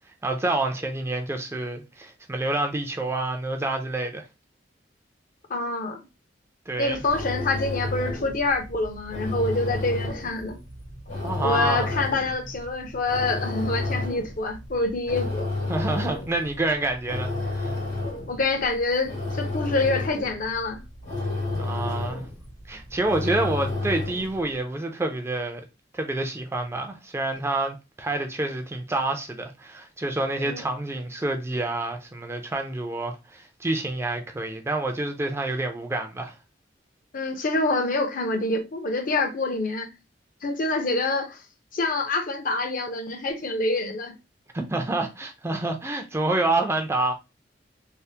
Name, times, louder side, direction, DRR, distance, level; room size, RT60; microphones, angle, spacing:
voice 1, 0.2-4.2 6.7-7.0 11.2-11.9 15.7-17.7 21.5-22.3 22.7-25.6 25.9-36.3 44.5-47.1, right 2 dB, 15° right, 0.4 m, -28 dB
voice 2, 5.5-6.1 6.8-10.6 11.4-15.5 18.3-20.8 30.4-30.6 37.1-39.9 40.4-41.4 41.7-44.2, left 2 dB, 50° left, 0.6 m, -26 dB
sound 1, 6.8-24.4, left 2 dB, 80° left, 1.7 m, -32 dB
3.3 x 2.0 x 2.7 m
head